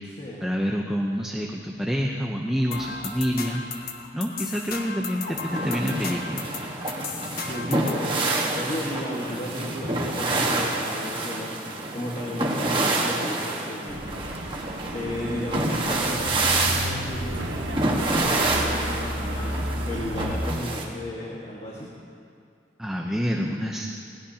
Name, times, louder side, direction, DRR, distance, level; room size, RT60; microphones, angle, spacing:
voice 1, 0.0-6.5 22.8-23.9, equal, 5° right, 0 dB, 0.7 m, -28 dB
sound 1, 2.7-8.0, left 4 dB, 50° left, 1.1 m, -35 dB
sound 2, 5.3-20.8, right 2 dB, 30° right, 1.4 m, -28 dB
voice 2, 7.4-11.6 11.9-14.3 14.9-21.9, left 1 dB, 35° left, -5 dB, 1.6 m, -34 dB
Truck, 13.9-20.4, equal, 85° right, 1.1 m, -33 dB
20.5 x 17.0 x 2.8 m, 2.4 s
head